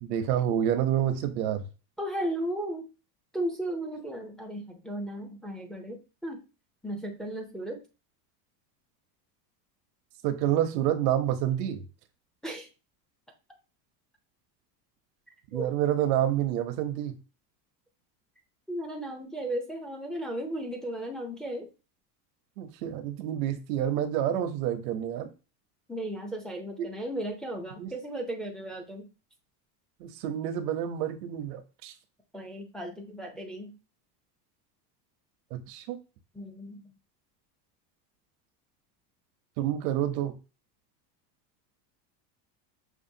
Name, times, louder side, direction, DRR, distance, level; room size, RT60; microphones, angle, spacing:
voice 1, 0.0-1.6 10.2-11.8 15.5-17.1 22.6-25.3 27.8-27.9 30.0-31.9 35.5-36.0 39.6-40.3, right 11 dB, 80° right, 0.9 m, -28 dB
voice 2, 2.0-2.9 3.3-6.4 6.8-7.8 12.4-12.7 15.5-15.7 18.7-21.7 25.9-29.1 32.3-33.7 36.3-36.8, right 1 dB, ahead, 0.5 m, -35 dB
6.1 x 2.5 x 2.7 m
supercardioid pair, 140°, 48 cm